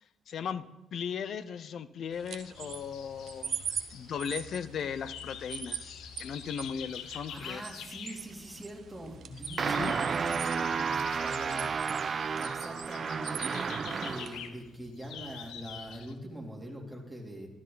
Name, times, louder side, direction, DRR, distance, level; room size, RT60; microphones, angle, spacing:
voice 1, 0.3-3.6 3.9-7.6 9.7-10.0, left 7 dB, 65° left, 15 dB, 0.7 m, -37 dB
sound 1, 2.1-14.5, right 8 dB, 60° right, 0.8 m, -43 dB
sound 2, 2.6-16.1, left 8 dB, 85° left, 1.0 m, -47 dB
voice 2, 7.0-17.5, right 1 dB, ahead, -2 dB, 3.5 m, -43 dB
sound 3, 9.6-14.4, right 6 dB, 45° right, 0.3 m, -32 dB
12.5 x 12.5 x 4.1 m, 1.0 s
cardioid pair, 90°, 0 cm